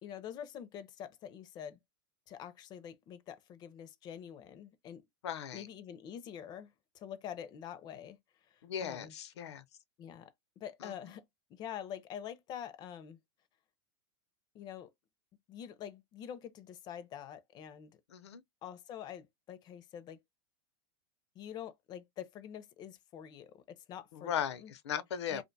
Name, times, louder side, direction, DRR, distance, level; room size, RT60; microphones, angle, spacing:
voice 1, 0.0-1.8 2.3-5.0 5.5-8.2 8.5-9.1 10.0-10.3 10.6-11.2 11.5-13.2 14.5-14.9 15.5-17.9 18.6-20.2 21.4-24.7 25.3-25.4, left 9 dB, 30° left, 0.4 m, -46 dB
voice 2, 5.2-5.7 8.6-9.6 10.8-10.9 18.1-18.4 24.1-25.4, left 9 dB, 85° left, 0.5 m, -37 dB
2.5 x 2.2 x 2.5 m
supercardioid pair, 135°, 14 cm